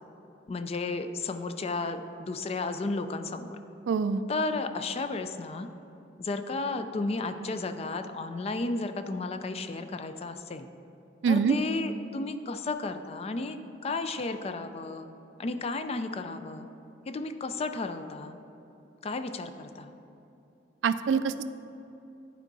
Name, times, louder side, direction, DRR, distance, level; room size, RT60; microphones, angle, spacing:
voice 1, 0.5-3.6 4.3-5.7 6.2-10.7 11.3-13.6 13.8-15.1 15.4-16.7 17.1-18.4 19.0-19.9, left 3 dB, 35° left, 9 dB, 0.4 m, -33 dB
voice 2, 3.9-4.2 11.2-11.6 20.8-21.4, right 6 dB, 85° right, 13 dB, 0.3 m, -25 dB
10.5 x 4.5 x 4.0 m, 2.8 s
head